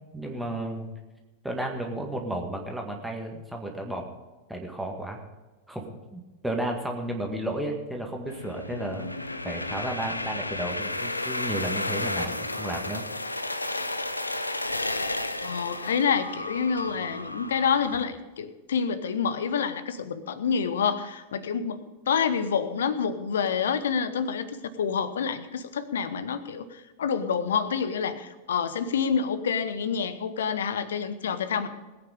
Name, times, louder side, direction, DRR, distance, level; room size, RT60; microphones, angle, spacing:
voice 1, 0.1-0.9 1.4-4.1 4.5-5.2 5.7-9.1 9.4-13.4, right 1 dB, 5° right, 1 dB, 1.9 m, -33 dB
sound 1, 8.3-18.0, left 2 dB, 85° left, 0.7 m, -32 dB
voice 2, 15.4-31.7, left 6 dB, 65° left, 13 dB, 1.0 m, -28 dB
20.0 x 8.8 x 5.0 m, 1.2 s
figure-of-eight pair, 90°, 0 cm